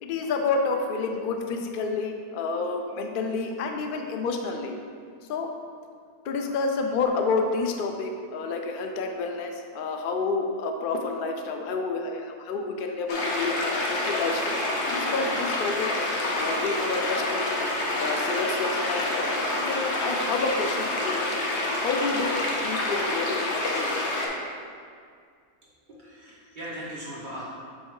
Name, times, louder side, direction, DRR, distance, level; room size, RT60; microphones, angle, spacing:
voice 1, 0.0-4.8 5.3-5.5 6.2-15.9 16.4-17.5 17.9-21.3 21.8-24.0, left 4 dB, 85° left, 4 dB, 0.4 m, -29 dB
sound 1, 13.1-24.3, left 1 dB, 50° left, 1.0 m, -27 dB
voice 2, 25.9-27.4, right 1 dB, 30° right, -9 dB, 1.7 m, -38 dB
7.5 x 3.3 x 4.7 m, 2.1 s
omnidirectional pair, 1.6 m